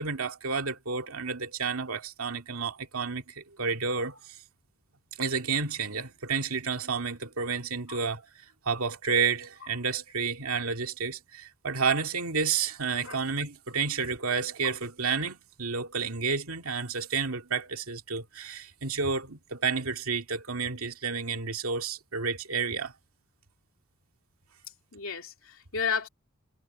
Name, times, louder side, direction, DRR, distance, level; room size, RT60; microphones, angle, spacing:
voice 1, 0.0-4.4 5.2-8.2 8.7-22.9, right 5 dB, 75° right, 2.2 m, -30 dB
voice 2, 24.9-26.1, left 6 dB, 65° left, 3.2 m, -32 dB
head